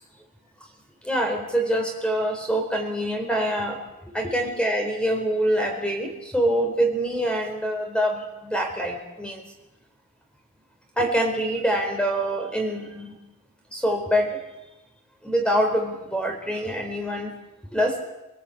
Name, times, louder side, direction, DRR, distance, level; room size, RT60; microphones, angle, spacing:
voice 1, 1.0-3.7 4.1-9.4 11.0-13.1 13.7-14.4 15.2-17.3 17.7-17.9, equal, 5° left, 3 dB, 4.4 m, -25 dB
29.0 x 18.5 x 8.6 m, 1.0 s
head